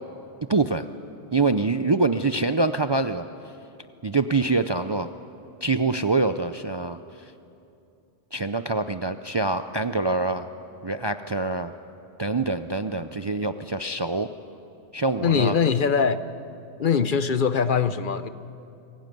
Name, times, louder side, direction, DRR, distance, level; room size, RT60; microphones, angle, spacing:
voice 1, 0.5-0.9 1.3-3.2 4.0-5.1 5.6-7.0 8.3-10.5 10.8-11.7 12.2-14.3 14.9-15.5, right 3 dB, 35° right, 9 dB, 0.5 m, -25 dB
voice 2, 15.2-16.2 16.8-18.3, left 6 dB, 55° left, 12 dB, 0.9 m, -22 dB
25.5 x 17.5 x 9.2 m, 2.7 s
omnidirectional pair, 1.1 m